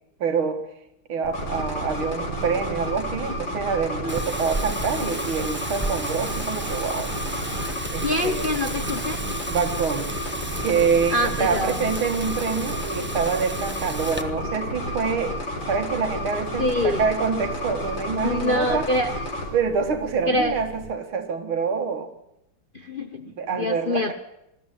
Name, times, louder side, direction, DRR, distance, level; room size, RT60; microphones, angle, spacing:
voice 1, 0.2-0.7 1.1-7.1 7.9-8.5 9.5-10.2 10.6-15.4 15.7-18.9 19.5-22.1 23.3-24.1, right 5 dB, 80° right, 7 dB, 2.7 m, -26 dB
sound 1, 1.2-20.9, right 7 dB, 45° right, 1.6 m, -38 dB
sound 2, 1.3-19.5, left 1 dB, 60° left, 4.7 m, -31 dB
Wind, 4.1-14.2, right 1 dB, 10° right, 0.9 m, -34 dB
voice 2, 8.0-9.2 11.1-11.8 16.6-17.0 18.2-19.1 20.3-20.6 22.7-24.1, left 1 dB, 40° left, 6 dB, 0.8 m, -25 dB
20.5 x 14.0 x 9.3 m, 0.85 s
omnidirectional pair, 2.2 m